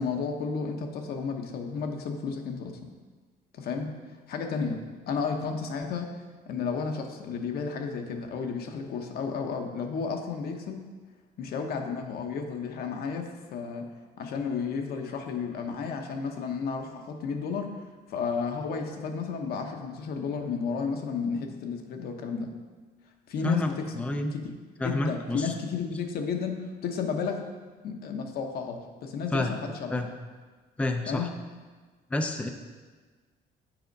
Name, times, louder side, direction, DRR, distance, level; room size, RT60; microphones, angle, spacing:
voice 1, 0.0-2.7 3.5-3.9 4.3-4.8 5.1-6.1 6.5-10.8 11.4-13.9 14.2-17.8 18.1-22.5 23.3-24.0 24.3-24.4 24.8-27.4 27.8-30.0 31.1-31.3, left 5 dB, 65° left, 4 dB, 0.9 m, -32 dB
voice 2, 23.4-24.3 24.8-25.5 29.3-29.5 29.9-30.1 30.8-31.3 32.1-32.5, left 2 dB, 5° left, 5 dB, 0.4 m, -29 dB
7.8 x 4.2 x 5.3 m, 1.4 s
cardioid pair, 110°, 17 cm